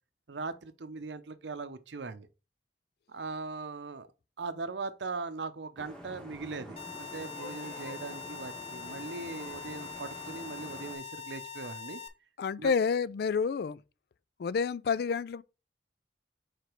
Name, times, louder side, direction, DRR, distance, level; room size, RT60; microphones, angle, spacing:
voice 1, 0.3-2.3 3.1-4.1 4.4-12.0 12.6-12.8, right 4 dB, 80° right, 0.7 m, -40 dB
Vehicle horn car horn honking / Traffic noise roadway noise, 5.8-10.9, equal, 5° left, 1.1 m, -47 dB
sound 1, 6.8-12.1, left 7 dB, 35° left, 0.8 m, -43 dB
voice 2, 12.4-13.8 14.4-15.4, left 5 dB, 60° left, 0.3 m, -29 dB
4.9 x 4.4 x 4.5 m
head